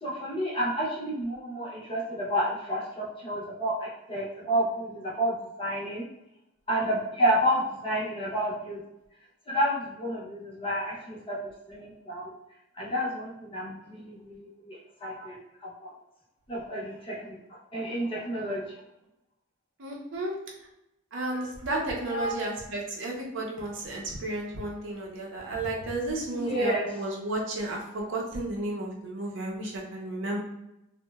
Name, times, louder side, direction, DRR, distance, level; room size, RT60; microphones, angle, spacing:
voice 1, 0.0-6.0 6.7-8.8 9.5-11.4 11.7-12.3 12.7-15.9 16.5-17.4 17.7-18.6 21.3-21.4 22.1-22.3 26.3-26.9, equal, 25° left, -5 dB, 0.6 m, -30 dB
voice 2, 19.8-20.3 21.1-30.4, right 2 dB, 60° right, -2 dB, 0.5 m, -33 dB
2.8 x 2.1 x 2.2 m, 0.87 s
head